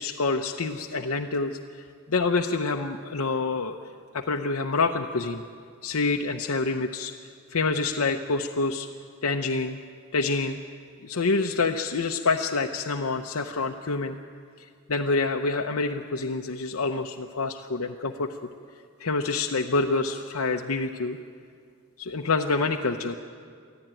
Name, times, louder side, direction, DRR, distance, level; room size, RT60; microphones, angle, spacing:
voice 1, 0.0-3.8 4.1-5.4 5.8-7.1 7.5-8.9 9.2-9.8 10.1-10.6 11.0-14.2 14.6-18.4 19.0-21.2 22.0-23.1, left 3 dB, 75° left, 3 dB, 0.8 m, -27 dB
24.5 x 15.0 x 9.1 m, 2.2 s
head